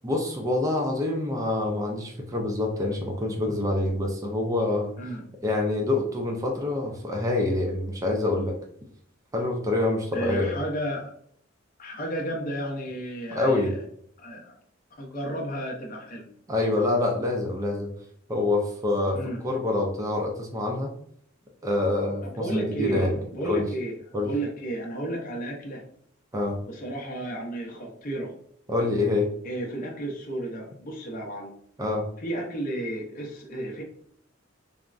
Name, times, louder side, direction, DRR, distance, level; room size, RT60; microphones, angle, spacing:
voice 1, 0.0-4.9 5.4-8.6 9.3-10.5 13.3-13.7 16.5-17.9 18.3-20.9 21.6-23.1 23.4-23.6 24.1-24.3 26.3-26.5 28.7-29.3 31.8-32.0, left 2 dB, 15° right, 1 dB, 0.4 m, -26 dB
voice 2, 10.1-11.1 11.8-13.7 14.2-14.6 15.0-16.3 19.1-19.4 22.2-24.0 24.2-25.8 26.7-28.3 29.4-31.5 32.2-33.8, right 1 dB, 45° left, 0 dB, 0.6 m, -32 dB
3.5 x 2.0 x 2.4 m, 0.65 s
head